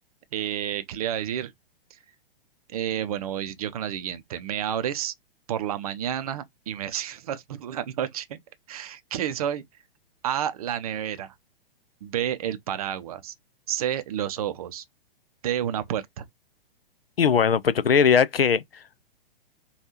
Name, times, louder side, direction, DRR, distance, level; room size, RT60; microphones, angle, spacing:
voice 1, 0.3-1.5 2.7-5.1 5.5-8.4 8.7-9.6 10.2-11.3 12.0-13.3 13.7-14.8 15.4-16.3, right 10 dB, 40° right, 0.5 m, -30 dB
voice 2, 17.2-18.6, left 7 dB, 75° left, 0.5 m, -19 dB
5.2 x 2.3 x 2.8 m
figure-of-eight pair, 115°, 30 cm